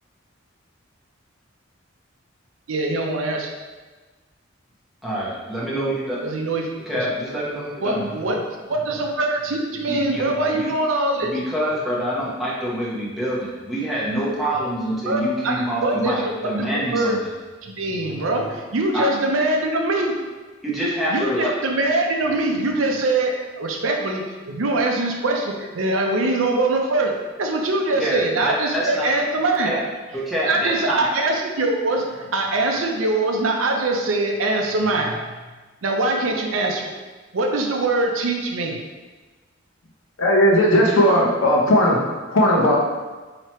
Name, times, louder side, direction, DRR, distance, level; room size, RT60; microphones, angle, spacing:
voice 1, 2.7-3.5 6.2-6.7 7.8-8.4 8.7-11.3 15.1-16.2 16.9-17.2 17.6-20.1 21.1-29.7 30.5-35.3 35.8-37.0 37.3-38.8, right 2 dB, 75° right, 2 dB, 0.6 m, -23 dB
voice 2, 5.0-6.2 6.9-8.1 9.9-10.7 11.2-17.3 18.9-19.1 20.6-21.5 28.0-29.0 29.6-29.8 30.3-31.0, right 1 dB, ahead, -8 dB, 1.0 m, -26 dB
voice 3, 40.2-42.0 42.3-42.8, equal, 85° left, -3 dB, 0.9 m, -16 dB
3.1 x 2.9 x 4.3 m, 1.3 s
head